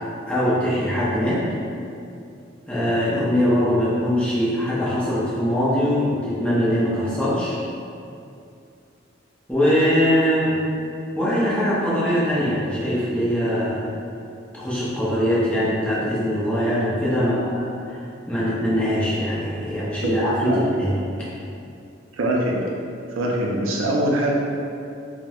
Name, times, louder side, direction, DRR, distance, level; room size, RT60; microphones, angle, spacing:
voice 1, 0.3-1.4 2.7-7.6 9.5-10.7 11.2-13.9 14.5-20.9 21.2-21.3, equal, 5° left, -9 dB, 0.5 m, -22 dB
voice 2, 22.1-22.7 23.1-24.4, right 1 dB, 75° right, -2 dB, 0.4 m, -23 dB
4.2 x 2.1 x 2.3 m, 2.6 s
head